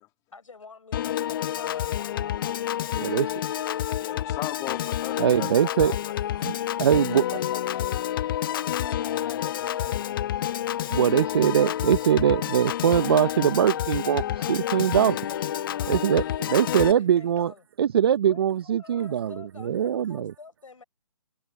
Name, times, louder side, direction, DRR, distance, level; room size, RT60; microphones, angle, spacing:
voice 1, 0.3-2.6 6.9-8.1 8.4-10.2 14.4-17.7 18.3-20.8, left 4 dB, 80° left, 6.0 m, -47 dB
Piano / Organ, 0.9-16.9, left 11 dB, 40° left, 1.3 m, -29 dB
voice 2, 4.0-6.8 16.2-16.7, left 20 dB, 20° left, 2.7 m, -39 dB
voice 3, 5.2-5.9 6.4-7.2 10.9-14.2 14.5-15.2 15.9-16.2 16.5-17.5 17.8-20.3, right 9 dB, 50° right, 0.9 m, -22 dB
figure-of-eight pair, 145°, 17 cm